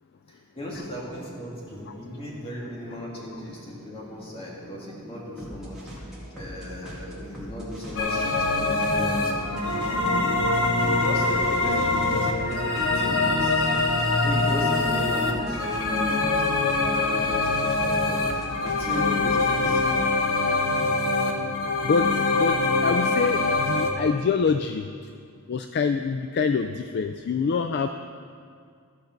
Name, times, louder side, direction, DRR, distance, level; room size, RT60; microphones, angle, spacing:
voice 1, 0.3-5.8 6.3-20.0, left 1 dB, 25° left, -4 dB, 2.3 m, -36 dB
sound 1, 0.5-20.2, equal, ahead, 2.2 m, -42 dB
sound 2, 8.0-23.9, left 3 dB, 65° left, 1.2 m, -24 dB
voice 2, 22.3-24.9 25.5-27.9, left 5 dB, 50° left, 8 dB, 0.3 m, -25 dB
14.5 x 5.2 x 5.9 m, 2.2 s
head